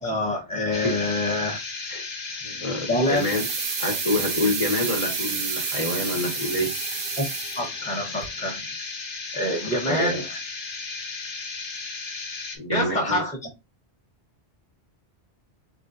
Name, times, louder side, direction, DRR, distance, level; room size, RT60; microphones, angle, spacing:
voice 1, 0.0-1.6 2.3-2.4 2.9-3.2 7.2-7.3 7.6-8.6 9.3-10.4 12.7-13.5, left 1 dB, 5° left, 0.8 m, -26 dB
sound 1, 0.7-12.6, left 4 dB, 65° left, 1.0 m, -35 dB
voice 2, 2.4-3.4 3.8-6.7 9.9-10.2 12.6-13.2, left 1 dB, 35° left, 1.1 m, -27 dB
sound 2, 3.1-8.0 8.2-8.3, right 8 dB, 65° right, 0.7 m, -30 dB
3.7 x 3.6 x 2.5 m
omnidirectional pair, 1.1 m